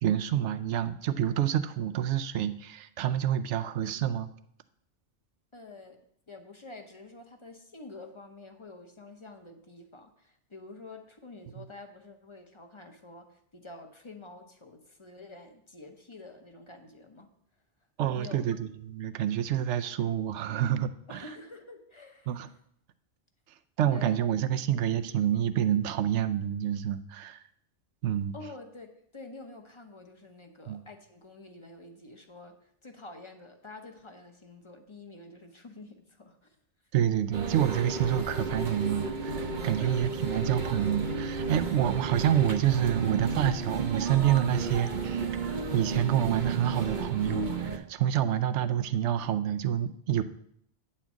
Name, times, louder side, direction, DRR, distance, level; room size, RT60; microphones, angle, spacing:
voice 1, 0.0-4.3 11.6-11.7 18.0-21.3 22.3-22.5 23.8-27.4 28.0-28.3 30.7-30.8 36.9-45.3 45.7-50.2, right 10 dB, 80° right, 11 dB, 0.9 m, -28 dB
voice 2, 5.5-6.0 6.3-17.3 18.1-18.4 21.1-22.5 23.9-24.2 28.3-36.6 39.8-40.5, left 3 dB, 30° left, 5 dB, 0.8 m, -48 dB
sound 1, 37.3-47.8, right 4 dB, 45° right, 0.8 m, -33 dB
9.1 x 4.4 x 7.2 m, 0.70 s
omnidirectional pair, 1.2 m